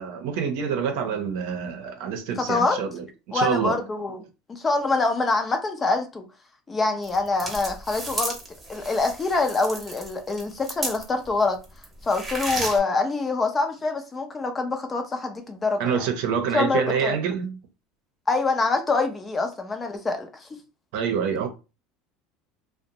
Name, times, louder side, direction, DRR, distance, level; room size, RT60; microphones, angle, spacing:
voice 1, 0.0-3.8 15.8-17.6 20.9-21.5, right 7 dB, 75° right, 0.6 m, -26 dB
voice 2, 2.5-2.8 3.3-4.2 4.5-6.3 6.7-8.4 8.7-11.6 12.0-16.1 16.5-17.2 18.3-20.5, left 3 dB, 20° left, 0.5 m, -25 dB
sound 1, 7.0-11.3 11.6-12.8, right 2 dB, 15° right, 0.8 m, -33 dB
2.5 x 2.1 x 2.9 m
supercardioid pair, 125°, 0 cm